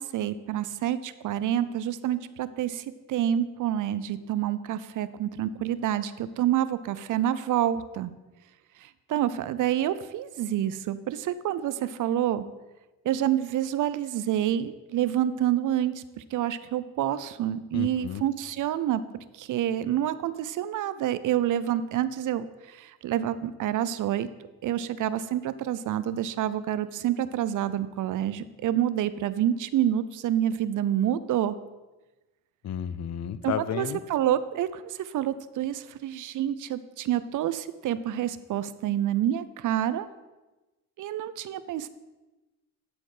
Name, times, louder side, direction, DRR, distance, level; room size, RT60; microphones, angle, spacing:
voice 1, 0.0-8.1 8.8-12.5 13.0-19.0 19.3-24.3 24.6-31.6 33.4-40.1 41.0-41.9, right 11 dB, 60° right, 14 dB, 0.5 m, -28 dB
voice 2, 17.7-18.2 32.6-34.0, left 9 dB, 50° left, 15 dB, 0.5 m, -32 dB
11.5 x 4.2 x 4.9 m, 1.1 s
cardioid pair, 75°, 35 cm